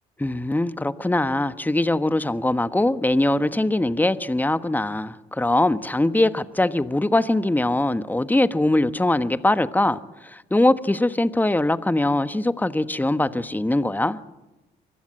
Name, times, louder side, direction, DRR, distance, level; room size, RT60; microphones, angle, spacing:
voice 1, 0.2-14.2, left 1 dB, 10° left, 1.1 m, -22 dB
24.0 x 21.0 x 7.6 m
hypercardioid pair, 55°, 21 cm